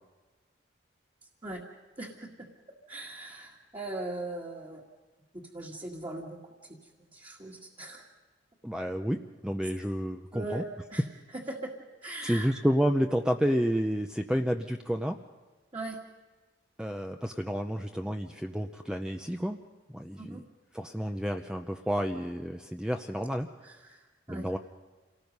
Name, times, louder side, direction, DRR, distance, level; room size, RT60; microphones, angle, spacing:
voice 1, 2.0-2.5 2.9-4.8 5.3-6.8 7.1-8.1 10.3-11.0 11.3-11.7 12.0-12.5 15.7-16.0 20.2-20.4 23.6-24.5, right 2 dB, 25° right, -3 dB, 1.9 m, -40 dB
voice 2, 8.6-10.6 12.2-15.2 16.8-19.6 19.9-20.4 20.7-23.5 24.3-24.6, equal, 5° right, 4 dB, 0.6 m, -30 dB
28.0 x 18.5 x 5.4 m, 1.3 s
head